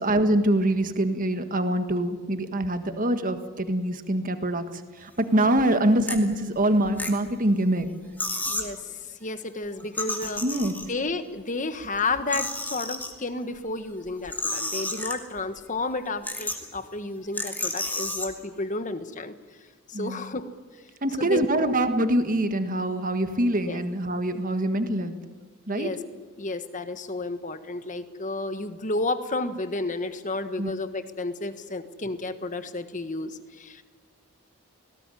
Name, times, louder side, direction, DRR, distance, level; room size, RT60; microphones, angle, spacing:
voice 1, 0.0-4.6 5.0-7.9 10.4-10.7 19.9-20.2 21.0-25.2 25.7-25.9 30.6-30.7, right 1 dB, 40° right, 8 dB, 1.6 m, -24 dB
sound 1, 5.4-5.6 6.0-6.2 6.8-7.5 7.8-7.9 8.2-8.7 9.8-11.1 11.7-13.1 14.1-15.4 15.8-15.9 16.2-16.8 17.3-18.3, left 2 dB, 10° left, 2.5 m, -31 dB
voice 2, 8.5-10.4 10.9-19.3 19.9-20.5 21.2-21.7 23.7-23.8 25.7-26.0 26.4-33.8, left 2 dB, 35° left, 10 dB, 1.4 m, -32 dB
20.0 x 18.0 x 9.9 m, 1.4 s
head